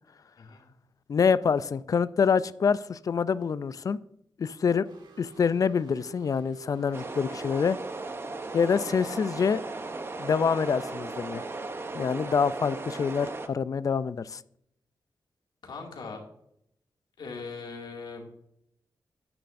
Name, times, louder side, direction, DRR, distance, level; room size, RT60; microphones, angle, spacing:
voice 1, 1.1-4.0 4.4-4.9 5.2-7.8 8.5-9.6 10.2-11.5 11.9-14.4, left 6 dB, 50° left, 17 dB, 0.3 m, -26 dB
sound 1, 4.8-8.1, right 8 dB, 85° right, 2.0 m, -51 dB
sound 2, 6.9-13.5, right 3 dB, 30° right, 0.7 m, -37 dB
voice 2, 15.6-16.2 17.2-18.2, left 4 dB, 80° left, 0 dB, 2.2 m, -40 dB
10.0 x 9.7 x 2.6 m, 0.74 s
wide cardioid pair, 120°, 8 cm